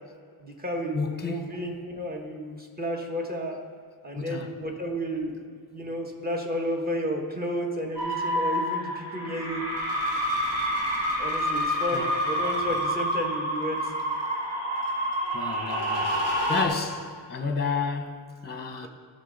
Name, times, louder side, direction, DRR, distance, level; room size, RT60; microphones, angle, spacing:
voice 1, 0.4-3.6 4.0-9.6 11.2-13.9 16.5-16.6, equal, 25° right, 1.3 m, -32 dB
voice 2, 0.9-1.5 4.2-4.5 11.9-12.1 15.3-16.2 16.5-18.9, left 5 dB, 25° left, 0.8 m, -31 dB
sound 1, 8.0-16.7, equal, 90° right, 2.3 m, -28 dB
15.5 x 6.7 x 3.9 m
wide cardioid pair, 145°, 40 cm